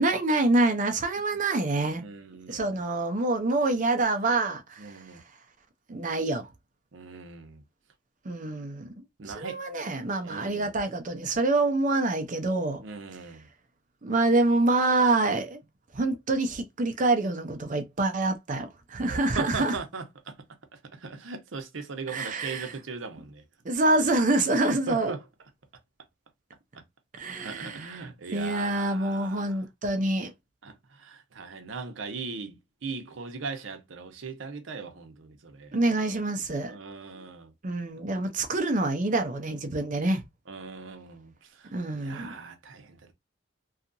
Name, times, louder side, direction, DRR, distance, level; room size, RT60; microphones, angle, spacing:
voice 1, 0.0-2.0 2.5-4.9 5.9-6.4 8.2-8.9 9.2-12.8 14.0-15.6 15.9-19.7 22.1-22.7 23.6-25.2 27.1-28.0 28.3-30.3 35.7-36.8 37.6-40.2 41.7-42.4, right 2 dB, 40° right, 0.6 m, -26 dB
voice 2, 2.0-2.8 4.8-5.2 6.9-7.6 9.2-9.6 10.2-10.7 12.8-13.5 19.0-20.3 20.9-23.4 23.8-24.1 24.7-25.2 27.4-29.6 30.6-35.8 36.7-37.5 38.1-38.2 40.5-41.7 42.0-43.1, right 4 dB, 75° right, 0.7 m, -39 dB
2.8 x 2.4 x 2.5 m
head